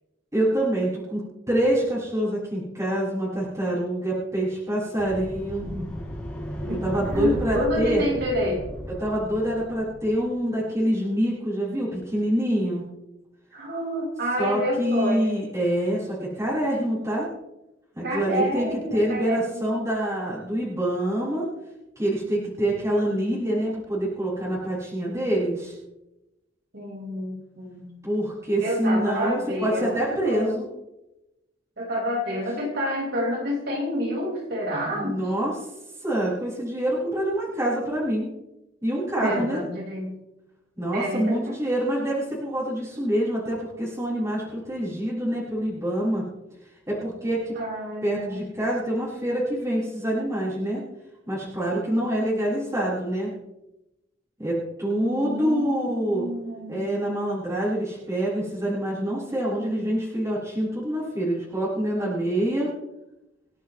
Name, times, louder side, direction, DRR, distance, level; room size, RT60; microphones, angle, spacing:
voice 1, 0.3-5.7 6.8-8.0 9.0-12.8 14.4-17.2 17.9-21.5 22.0-25.7 28.0-30.6 34.9-35.5 36.0-38.3 38.8-39.6 40.8-46.2 46.9-47.5 48.0-50.8 51.3-53.3 54.4-56.2 56.7-62.7, right 1 dB, 15° right, -9 dB, 6.4 m, -26 dB
sound 1, 5.0-10.2, equal, 5° left, 4.5 m, -35 dB
voice 2, 5.6-6.0 6.6-6.8 7.1-8.6 13.5-15.4 18.0-19.7 26.7-27.9 28.6-30.6 31.8-35.2 39.2-40.1 40.9-41.6 47.5-48.4 55.1-56.9, equal, 60° right, -2 dB, 5.1 m, -29 dB
29.0 x 9.9 x 3.2 m, 0.95 s
head